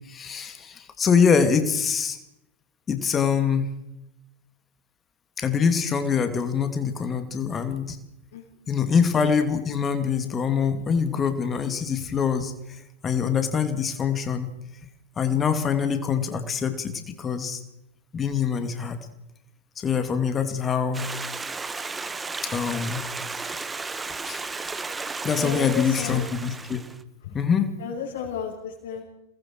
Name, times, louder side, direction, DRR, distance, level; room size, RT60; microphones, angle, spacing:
voice 1, 0.0-2.2 2.9-3.7 5.4-8.0 8.7-12.5 13.0-14.5 15.2-17.6 18.1-19.0 19.8-21.1 22.4-23.0 24.2-24.4 25.2-26.8 27.3-27.7, left 6 dB, 20° left, 7 dB, 2.7 m, -24 dB
Stream, 20.9-27.0, right 4 dB, 10° right, 1.3 m, -34 dB
voice 2, 25.4-26.3 27.8-29.0, left 6 dB, 55° left, -4 dB, 6.0 m, -33 dB
29.5 x 20.0 x 4.8 m, 0.86 s
figure-of-eight pair, 90°, 0 cm